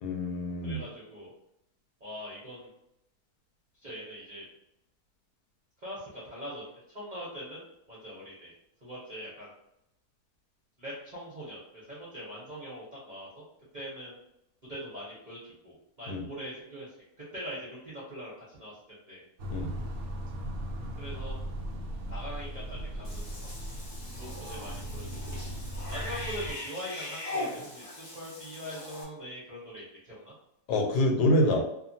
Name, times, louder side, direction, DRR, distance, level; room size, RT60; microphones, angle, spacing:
voice 1, 0.0-0.8 16.1-16.2 19.5-19.7 30.7-31.6, left 1 dB, 80° left, 1 dB, 1.2 m, -26 dB
voice 2, 0.6-1.3 2.0-2.7 3.8-4.5 5.8-7.6 7.9-8.5 8.8-9.5 10.8-13.4 13.7-14.2 14.7-16.9 17.3-19.2 20.9-21.4 22.1-23.5 24.1-25.4 25.9-30.3, equal, 40° right, -7 dB, 0.6 m, -42 dB
sound 1, 19.4-26.5, equal, 80° right, 0.6 m, -38 dB
Cat / Bathtub (filling or washing), 23.0-29.0, left 2 dB, 40° left, 0.5 m, -40 dB
2.8 x 2.3 x 2.7 m, 0.81 s
omnidirectional pair, 1.8 m